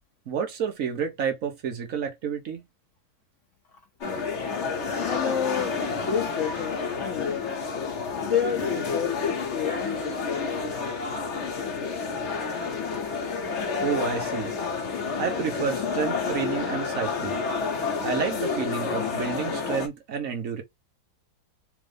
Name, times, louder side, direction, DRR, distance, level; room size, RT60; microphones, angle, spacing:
voice 1, 0.3-2.6 13.8-14.5 15.2-17.4 18.0-20.6, right 7 dB, 50° right, 1.2 m, -30 dB
sound 1, 4.0-19.9, left 5 dB, 50° left, 1.0 m, -29 dB
voice 2, 5.1-7.6 8.2-10.4, left 8 dB, 70° left, 0.7 m, -30 dB
3.7 x 2.6 x 3.3 m
omnidirectional pair, 2.0 m